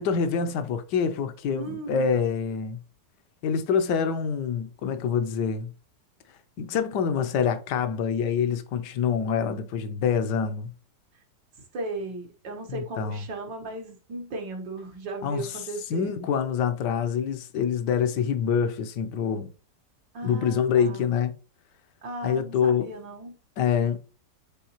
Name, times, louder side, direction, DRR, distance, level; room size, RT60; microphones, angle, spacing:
voice 1, 0.0-2.8 3.4-5.7 6.6-10.7 12.7-13.2 15.2-19.5 20.2-21.3 22.2-22.9 23.6-24.0, left 7 dB, 75° left, 1.3 m, -26 dB
voice 2, 1.5-2.1 11.7-16.2 20.1-21.0 22.0-23.3, right 2 dB, 90° right, 2.1 m, -36 dB
9.3 x 3.9 x 2.9 m
omnidirectional pair, 1.9 m